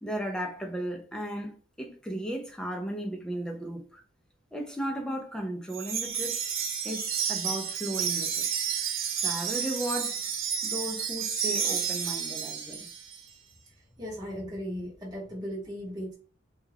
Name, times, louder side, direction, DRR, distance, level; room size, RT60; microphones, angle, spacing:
voice 1, 0.0-4.0 4.5-6.4 6.8-8.5 9.2-10.3 10.6-12.9, right 1 dB, 5° left, 0.3 m, -35 dB
Wind chime, 5.7-13.2, right 7 dB, 70° right, 0.6 m, -31 dB
voice 2, 14.0-16.1, equal, 20° right, 0.8 m, -37 dB
2.3 x 2.2 x 3.2 m
head